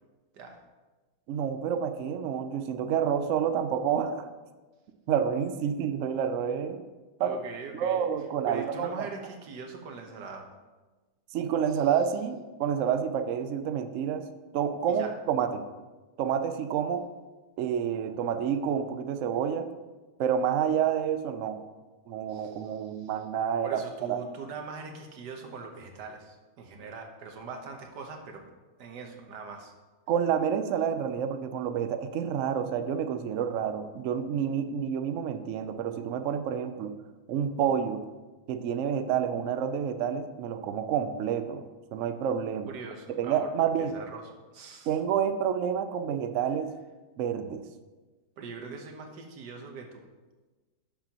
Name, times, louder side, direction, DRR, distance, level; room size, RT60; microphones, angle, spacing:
voice 1, 1.3-4.3 5.1-6.8 7.2-7.4 7.7-9.1 11.3-14.3 14.5-15.6 16.2-17.1 17.6-19.7 20.2-21.6 22.1-24.2 30.1-36.9 37.3-38.0 38.5-41.6 41.9-42.7 43.2-43.9 44.9-46.7 47.2-47.6, right 8 dB, 70° right, 9 dB, 0.8 m, -29 dB
voice 2, 7.2-8.1 8.5-10.5 11.7-11.8 14.9-15.1 22.3-23.1 23.6-28.4 28.8-29.7 42.7-43.5 43.8-45.0 48.4-50.0, right 4 dB, 85° right, 4 dB, 1.6 m, -42 dB
11.5 x 6.9 x 2.9 m, 1.2 s
omnidirectional pair, 1.7 m